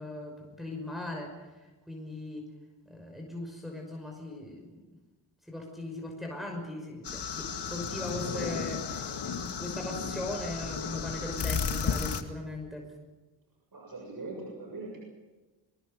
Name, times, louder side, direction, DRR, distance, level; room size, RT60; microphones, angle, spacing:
voice 1, 0.0-1.5 1.9-2.5 2.8-4.8 5.5-12.9, left 1 dB, ahead, 1 dB, 5.8 m, -39 dB
sound 1, 7.0-12.2, left 6 dB, 60° left, 2.2 m, -33 dB
voice 2, 13.7-15.0, right 2 dB, 50° right, 0 dB, 7.1 m, -41 dB
24.0 x 22.0 x 6.7 m, 1.2 s
cardioid pair, 65°, 45 cm